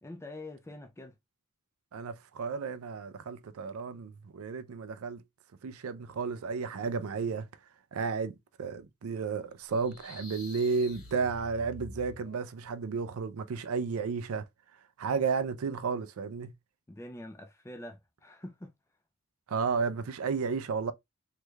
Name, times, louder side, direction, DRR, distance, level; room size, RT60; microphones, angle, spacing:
voice 1, 0.0-1.2 16.9-18.7, left 1 dB, 10° left, 0.3 m, -45 dB
voice 2, 1.9-5.2 5.6-7.5 7.9-14.4 15.0-16.5 19.5-20.9, right 5 dB, 80° right, 0.4 m, -33 dB
sound 1, 9.7-12.5, left 1 dB, 75° left, 1.2 m, -48 dB
3.3 x 3.1 x 2.2 m
head